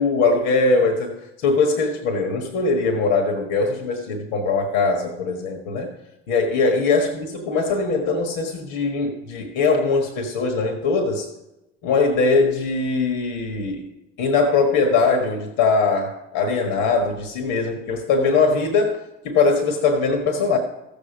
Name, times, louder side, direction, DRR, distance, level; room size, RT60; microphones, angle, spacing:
voice 1, 0.0-5.9 6.3-11.3 11.8-13.9 14.2-19.0 19.2-20.6, left 4 dB, 80° left, 3 dB, 1.4 m, -21 dB
14.0 x 7.2 x 5.0 m, 0.98 s
supercardioid pair, 75°, 31 cm